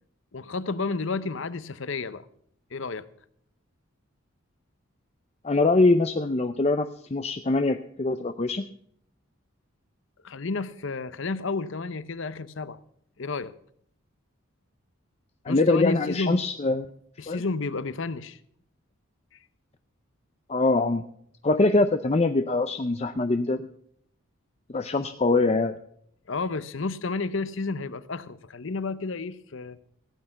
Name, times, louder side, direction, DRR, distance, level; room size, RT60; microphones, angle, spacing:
voice 1, 0.3-2.3 2.7-3.1 10.2-12.8 13.2-13.5 15.5-16.4 17.2-18.4 26.3-29.8, left 3 dB, 60° left, 15 dB, 0.7 m, -31 dB
voice 2, 5.4-8.7 15.5-16.9 17.3-17.4 20.5-21.0 21.4-23.7 24.7-25.7, left 3 dB, 30° left, 9 dB, 0.5 m, -23 dB
16.5 x 8.9 x 5.7 m, 0.67 s
head